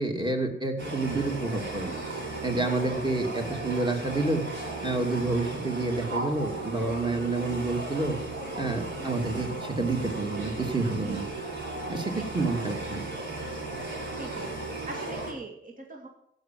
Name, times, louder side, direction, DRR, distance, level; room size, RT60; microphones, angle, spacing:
voice 1, 0.0-1.9 2.4-4.5 4.8-8.2 8.5-11.2 11.9-13.1, right 3 dB, 20° right, 3 dB, 2.6 m, -29 dB
sound 1, 0.8-15.3, right 2 dB, 55° right, 5.0 m, -36 dB
voice 2, 10.9-11.3 12.0-12.6 14.1-16.1, right 2 dB, 40° right, 1 dB, 2.2 m, -42 dB
15.5 x 5.8 x 7.5 m, 0.75 s
cardioid pair, 75°, 21 cm